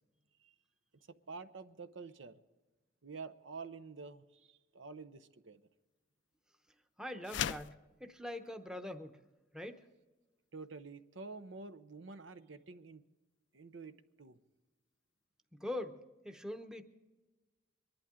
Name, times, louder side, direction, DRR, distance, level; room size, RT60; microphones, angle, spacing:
voice 1, 1.1-2.4 3.0-5.6 10.5-13.0 13.5-14.4, right 4 dB, 80° right, 10 dB, 0.8 m, -49 dB
voice 2, 7.0-9.2 9.5-9.8 15.5-16.8, left 1 dB, 5° right, 6 dB, 0.8 m, -43 dB
sound 1, 7.2-7.8, left 9 dB, 65° left, 0.4 m, -36 dB
23.5 x 11.5 x 3.8 m, 1.2 s
head